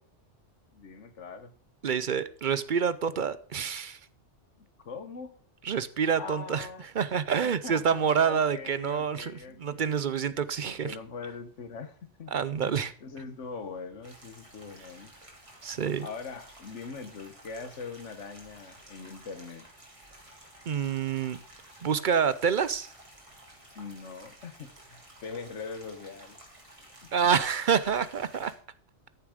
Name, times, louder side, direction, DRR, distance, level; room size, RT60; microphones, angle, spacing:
voice 1, 0.7-1.5 4.6-5.3 6.2-6.9 7.6-10.0 10.7-12.3 12.6-12.7 13.0-15.1 16.0-19.7 23.7-26.5 27.0-27.1, left 5 dB, 75° left, 10 dB, 1.5 m, -42 dB
voice 2, 1.8-4.0 5.6-6.7 6.9-9.3 9.6-11.0 12.3-12.9 15.6-16.1 20.7-21.4 21.8-22.9 27.1-28.5, right 7 dB, 55° right, 16 dB, 0.6 m, -27 dB
sound 1, 14.0-28.5, right 1 dB, 25° right, 3.0 m, -53 dB
14.0 x 7.0 x 5.0 m, 0.42 s
omnidirectional pair, 1.2 m